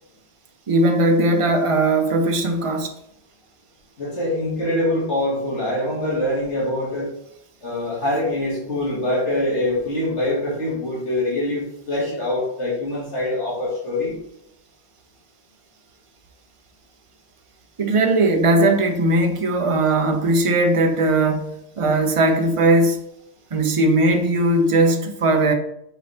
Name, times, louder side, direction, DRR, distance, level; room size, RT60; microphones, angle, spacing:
voice 1, 0.7-2.9 17.8-23.0 23.5-25.5, right 2 dB, 35° right, 0.7 m, -19 dB
voice 2, 4.0-7.1 7.6-14.2, left 1 dB, 90° left, 2.5 m, -24 dB
7.3 x 4.1 x 3.5 m
omnidirectional pair, 1.2 m